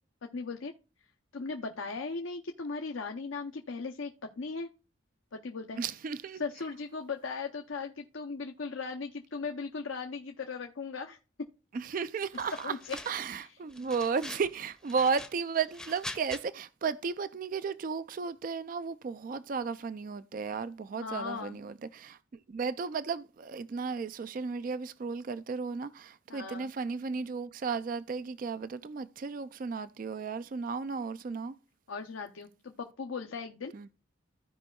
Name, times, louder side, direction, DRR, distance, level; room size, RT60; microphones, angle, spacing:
voice 1, 0.2-0.7 1.3-4.7 5.3-5.8 6.3-11.2 12.6-13.0 13.4-13.5 21.0-21.6 26.3-26.7 31.9-33.7, left 4 dB, 80° left, 0.7 m, -38 dB
voice 2, 5.8-6.4 11.7-12.7 13.1-22.2 22.5-31.5 33.7-33.9, right 5 dB, 45° right, 0.3 m, -34 dB
sound 1, 12.3-13.4 13.7-14.5 14.8-16.4, left 1 dB, 5° left, 0.7 m, -44 dB
15.5 x 5.2 x 2.3 m
head